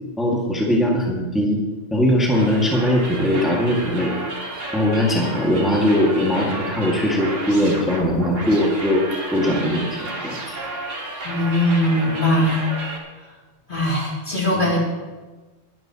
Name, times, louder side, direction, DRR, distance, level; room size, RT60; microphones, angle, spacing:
voice 1, 0.2-1.6 1.9-4.1 4.7-9.0 9.3-9.9 10.2-10.4 14.5-14.7, equal, ahead, -3 dB, 1.9 m, -20 dB
sound 1, 2.3-13.0, right 2 dB, 85° right, 2.4 m, -32 dB
voice 2, 11.2-12.6 13.7-14.8, left 1 dB, 45° left, -4 dB, 3.1 m, -20 dB
21.5 x 11.0 x 3.0 m, 1.2 s
omnidirectional pair, 1.3 m